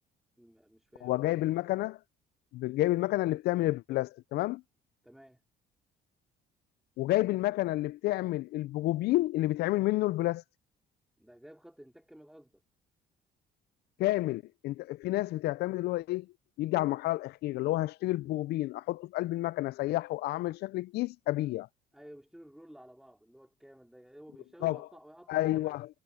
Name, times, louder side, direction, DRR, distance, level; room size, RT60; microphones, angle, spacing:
voice 1, 0.4-1.4 5.0-5.4 11.2-12.6 21.9-25.8, equal, ahead, 3.2 m, -53 dB
voice 2, 1.0-2.0 2.5-4.6 7.0-10.4 14.0-16.3 16.6-21.7 24.6-24.8 25.3-25.9, left 17 dB, 75° left, 0.5 m, -30 dB
cardioid pair, 110°, 17 cm